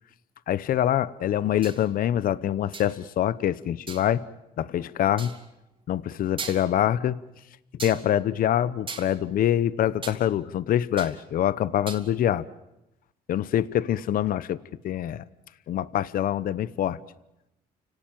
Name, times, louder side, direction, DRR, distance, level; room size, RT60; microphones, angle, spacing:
voice 1, 0.5-4.2 4.6-5.3 5.9-7.2 7.8-12.5 13.3-14.6 14.8-15.2 15.7-17.0, left 11 dB, 55° left, 17 dB, 0.8 m, -25 dB
sound 1, 1.6-1.9 2.7-3.0 3.9-4.1 5.2-5.4 6.0-6.1 6.4-6.9 7.8-8.1 8.9-10.2 10.5-11.2 11.5-12.0, right 4 dB, 30° right, 3.4 m, -38 dB
29.5 x 18.0 x 9.1 m, 0.90 s
cardioid pair, 110°, 17 cm